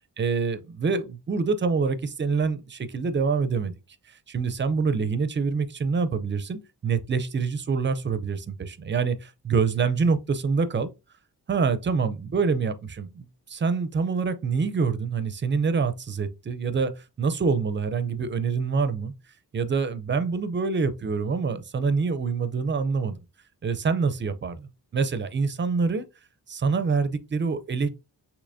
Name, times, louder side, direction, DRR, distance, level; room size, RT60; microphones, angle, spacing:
voice 1, 0.2-3.7 4.1-10.9 11.5-19.1 19.5-23.2 23.6-26.1 26.5-27.9, right 5 dB, 30° right, 0.5 m, -26 dB
6.6 x 3.0 x 2.6 m
wide cardioid pair, 135°, 40 cm